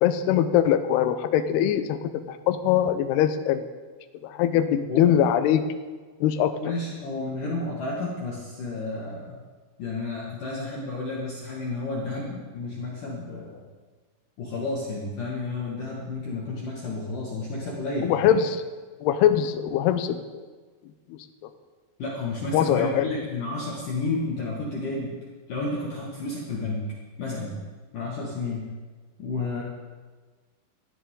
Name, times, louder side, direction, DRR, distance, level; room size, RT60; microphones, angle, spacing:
voice 1, 0.0-3.7 4.2-5.7 6.2-6.7 18.0-18.6 19.0-20.3 21.1-21.2 22.5-23.1, left 10 dB, 85° left, 8 dB, 2.4 m, -22 dB
voice 2, 6.6-9.4 9.8-13.6 14.4-18.2 22.0-25.2 25.5-26.8 27.2-27.6 27.9-28.7 29.2-29.6, left 3 dB, 55° left, -4 dB, 2.9 m, -31 dB
19.0 x 14.0 x 3.9 m, 1.4 s
omnidirectional pair, 5.7 m